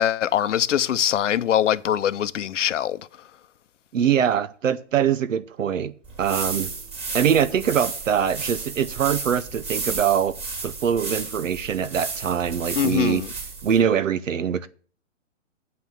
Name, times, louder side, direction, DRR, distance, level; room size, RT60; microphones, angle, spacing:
voice 1, 0.0-3.0 12.8-13.3, left 10 dB, 70° left, 0.7 m, -22 dB
voice 2, 3.9-5.9 6.2-6.7 7.1-10.4 10.6-13.2 13.6-14.7, right 8 dB, 85° right, 0.7 m, -23 dB
sound 1, 6.0-13.8, right 4 dB, 15° right, 3.0 m, -33 dB
7.9 x 5.8 x 7.1 m
hypercardioid pair, 145°, 38 cm